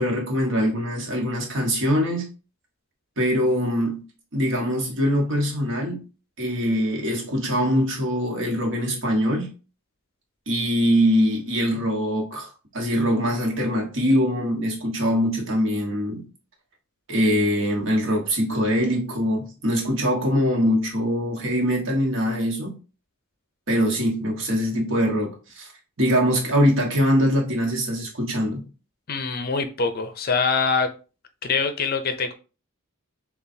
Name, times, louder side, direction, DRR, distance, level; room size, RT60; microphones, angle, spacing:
voice 1, 0.0-2.3 3.2-4.0 4.3-6.0 6.4-9.5 10.5-16.2 17.1-22.7 23.7-25.7 26.0-28.6, equal, 60° right, 1.4 m, -23 dB
voice 2, 29.1-30.9 31.4-32.3, left 4 dB, 45° left, 0.5 m, -24 dB
6.9 x 2.4 x 2.7 m
head